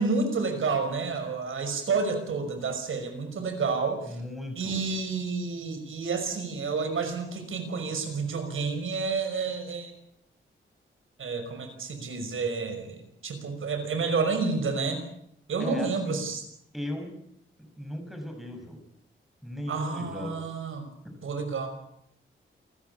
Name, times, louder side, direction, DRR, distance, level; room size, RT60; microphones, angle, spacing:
voice 1, 0.0-4.2 4.6-9.9 11.2-15.0 15.5-16.4 19.7-20.9 21.2-21.7, right 4 dB, 75° right, 7 dB, 5.8 m, -30 dB
voice 2, 4.0-4.8 15.6-16.2 16.7-17.1 17.6-18.8 19.4-20.5 21.0-21.1, left 1 dB, ahead, 4 dB, 6.5 m, -37 dB
28.5 x 14.5 x 8.5 m, 0.73 s
wide cardioid pair, 140°, 21 cm